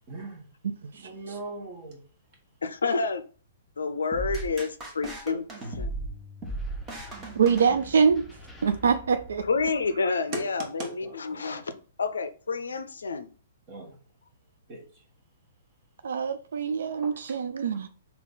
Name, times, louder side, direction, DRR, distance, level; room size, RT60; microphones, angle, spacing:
voice 1, 0.1-0.4 1.0-2.0 10.3-10.4 10.8-11.6 13.7-14.0 14.7-14.8 17.0-17.1, right 2 dB, 35° right, 1.4 m, -39 dB
voice 2, 2.6-3.2 3.8-5.4 5.7-5.9 9.5-11.7 12.0-13.3, left 4 dB, 70° left, 0.4 m, -29 dB
sound 1, 4.1-8.3, right 2 dB, 20° right, 1.1 m, -36 dB
sound 2, 6.4-10.1, right 1 dB, 5° left, 0.7 m, -48 dB
voice 3, 7.4-8.3 8.6-9.4 16.0-17.9, right 6 dB, 65° right, 0.3 m, -24 dB
3.7 x 2.8 x 3.8 m
figure-of-eight pair, 120°, 0 cm